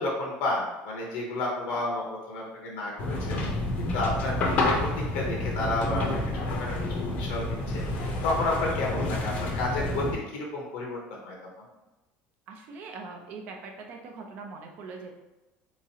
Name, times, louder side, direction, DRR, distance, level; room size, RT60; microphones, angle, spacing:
voice 1, 0.0-6.0 6.3-11.3, left 2 dB, 80° left, -2 dB, 0.9 m, -31 dB
sound 1, 3.0-10.1, left 2 dB, 40° left, 0.6 m, -29 dB
voice 2, 12.5-15.1, right 4 dB, 45° right, 2 dB, 0.6 m, -42 dB
3.6 x 3.0 x 2.8 m, 1.1 s
cardioid pair, 170°, 4 cm